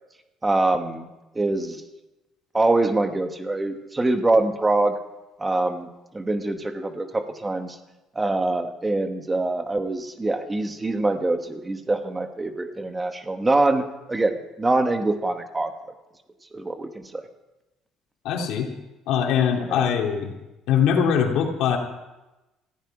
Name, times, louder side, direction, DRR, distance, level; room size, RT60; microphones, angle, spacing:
voice 1, 0.4-1.1 1.3-1.8 2.5-4.9 5.4-5.9 6.1-7.8 8.1-15.7 16.5-17.2 19.7-19.9, right 2 dB, 10° right, 7 dB, 1.1 m, -24 dB
voice 2, 18.2-18.7 19.1-20.3 20.7-21.8, left 7 dB, 75° left, 2 dB, 2.7 m, -22 dB
18.0 x 15.0 x 4.8 m, 1.0 s
cardioid pair, 175°, 0 cm